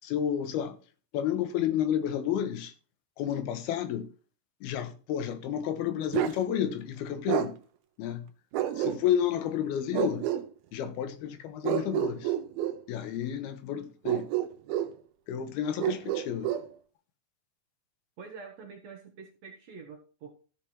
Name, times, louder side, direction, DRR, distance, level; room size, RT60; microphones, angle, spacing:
voice 1, 0.0-0.8 1.1-2.7 3.2-4.1 4.6-7.6 8.0-8.3 8.8-10.3 10.7-12.3 12.9-14.3 15.3-16.5, left 9 dB, 80° left, 2.9 m, -31 dB
Bark, 6.1-6.4 7.3-7.5 8.5-9.3 9.9-10.4 11.6-12.8 14.0-14.9 15.8-16.7, right 12 dB, 80° right, 2.7 m, -29 dB
voice 2, 18.2-20.3, right 5 dB, 60° right, 2.0 m, -46 dB
13.5 x 5.0 x 4.3 m
omnidirectional pair, 4.4 m